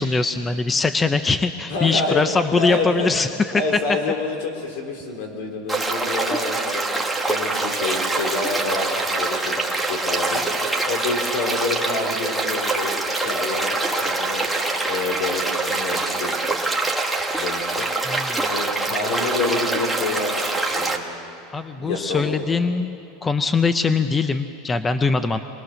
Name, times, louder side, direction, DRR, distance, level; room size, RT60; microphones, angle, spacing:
voice 1, 0.0-3.3 18.1-18.5 21.5-25.4, left 4 dB, 15° left, 10 dB, 0.6 m, -22 dB
voice 2, 1.7-2.2 2.6-3.1 3.5-6.9 7.3-10.4 10.8-14.4 14.8-16.4 17.3-17.9 18.5-21.0 21.8-22.4, left 3 dB, 75° left, 2 dB, 4.4 m, -28 dB
sound 1, 5.7-21.0, right 2 dB, ahead, 1.5 m, -24 dB
27.0 x 21.0 x 6.5 m, 2.5 s
supercardioid pair, 145°, 0 cm